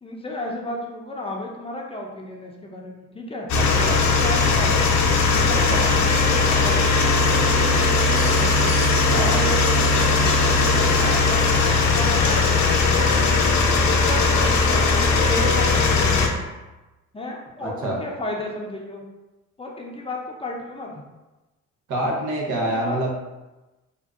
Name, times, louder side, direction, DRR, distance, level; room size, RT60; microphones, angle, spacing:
voice 1, 0.0-3.5 4.2-5.0 5.3-8.8 9.2-10.9 11.3-12.5 12.9-13.3 14.0-16.4 17.1-19.0 19.6-21.0 22.5-23.0, left 1 dB, 20° left, -1 dB, 0.5 m, -33 dB
sound 1, 3.5-16.3, left 3 dB, 65° left, 0.6 m, -19 dB
voice 2, 3.5-4.0 5.5-5.8 9.1-9.3 11.0-11.2 17.6-18.0 21.9-23.1, right 1 dB, 80° right, -2 dB, 0.9 m, -26 dB
3.6 x 2.4 x 2.4 m, 1.1 s
cardioid pair, 90°, 30 cm